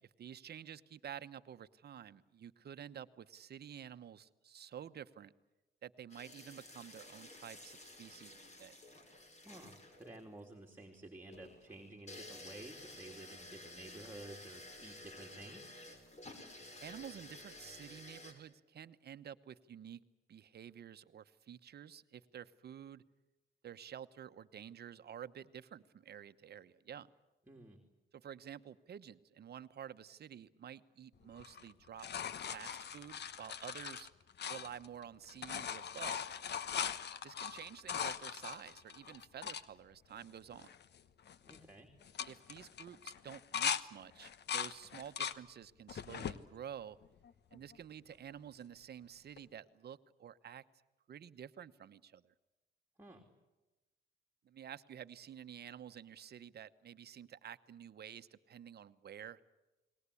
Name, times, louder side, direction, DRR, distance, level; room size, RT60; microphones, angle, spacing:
voice 1, 0.2-5.3 5.8-8.8 16.8-20.0 20.3-23.0 23.6-27.1 28.1-32.1 32.5-34.1 34.5-36.4 37.2-40.7 42.3-47.0 47.5-50.6 51.1-52.3 54.4-59.4, right 9 dB, 55° right, 12 dB, 1.1 m, -50 dB
sound 1, 6.1-18.3, left 2 dB, 35° left, 5.7 m, -53 dB
voice 2, 9.4-15.7 27.5-27.8 41.5-41.9 53.0-53.2, right 2 dB, 10° right, 2 dB, 3.1 m, -52 dB
sound 2, 31.4-35.0 35.3-39.6 40.2-40.3 40.5-41.0 41.3-41.6 42.0-43.8 44.2-45.4 45.9-46.4 47.0-47.8 49.4-49.5, left 8 dB, 60° left, 1.2 m, -40 dB
30.0 x 20.5 x 8.5 m, 1.1 s
cardioid pair, 90°, 20 cm